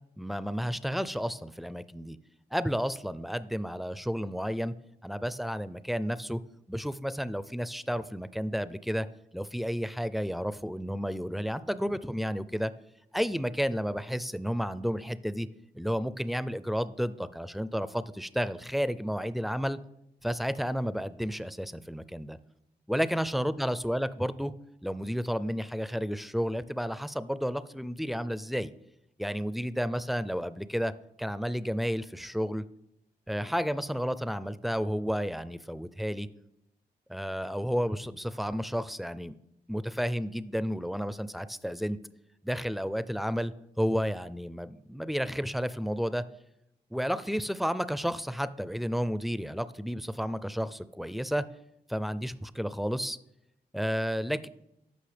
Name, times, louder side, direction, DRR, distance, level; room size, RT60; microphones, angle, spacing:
voice 1, 0.2-2.2 2.5-4.7 5.0-6.4 6.7-9.1 9.3-12.7 13.1-15.5 15.7-19.8 20.2-22.4 22.9-24.5 24.8-28.7 29.2-30.9 31.2-32.6 33.3-36.3 37.1-39.4 39.7-42.0 42.4-46.2 46.9-51.4 51.9-53.2 53.7-54.5, equal, ahead, 14 dB, 0.4 m, -31 dB
13.0 x 5.4 x 3.4 m, 0.83 s
cardioid pair, 65°, 17 cm